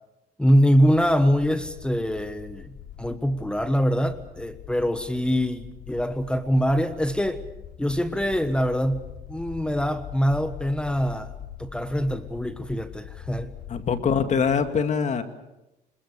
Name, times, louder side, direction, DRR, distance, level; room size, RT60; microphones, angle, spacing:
voice 1, 0.4-7.4 7.8-11.3 11.6-13.5, equal, 5° left, 10 dB, 1.3 m, -24 dB
sound 1, 0.9-14.7, left 9 dB, 75° left, 3.8 m, -43 dB
voice 2, 13.7-15.2, left 6 dB, 45° left, 8 dB, 2.2 m, -23 dB
26.5 x 21.5 x 6.9 m, 0.94 s
cardioid pair, 110°, 17 cm